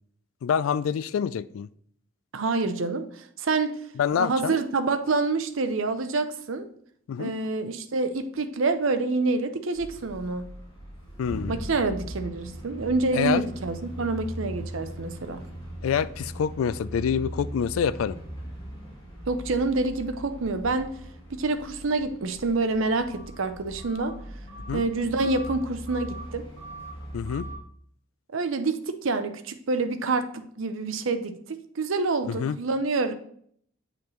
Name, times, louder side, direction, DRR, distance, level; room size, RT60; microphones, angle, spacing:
voice 1, 0.4-1.7 4.0-4.5 7.1-7.3 11.2-11.6 13.1-13.4 15.8-18.2 24.7-24.8 27.1-27.5 32.2-32.6, left 7 dB, 80° left, 17 dB, 0.3 m, -26 dB
voice 2, 2.3-3.7 4.1-6.7 7.2-10.4 11.5-15.4 19.3-20.9 21.3-24.1 24.7-26.4 28.3-31.4 31.8-33.1, right 3 dB, 70° right, 9 dB, 0.6 m, -27 dB
sound 1, 9.7-27.5, right 1 dB, 25° left, 2.7 m, -39 dB
8.6 x 5.0 x 3.1 m, 0.65 s
head